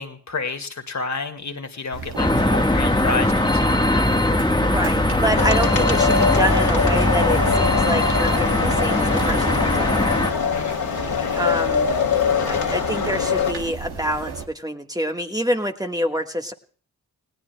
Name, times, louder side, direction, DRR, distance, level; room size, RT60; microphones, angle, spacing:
voice 1, 0.0-4.1 10.5-10.9, left 4 dB, 45° left, 6 dB, 1.9 m, -30 dB
sound 1, 1.9-14.4, right 5 dB, 85° right, 1.7 m, -34 dB
sound 2, 2.2-10.3, left 1 dB, 10° left, 1.3 m, -20 dB
voice 2, 4.6-10.1 11.4-11.9 12.5-16.5, equal, 10° right, 4 dB, 1.4 m, -26 dB
sound 3, 5.3-13.5, left 6 dB, 65° left, 2.5 m, -23 dB
30.0 x 17.0 x 2.2 m, 0.42 s
supercardioid pair, 45°, 38 cm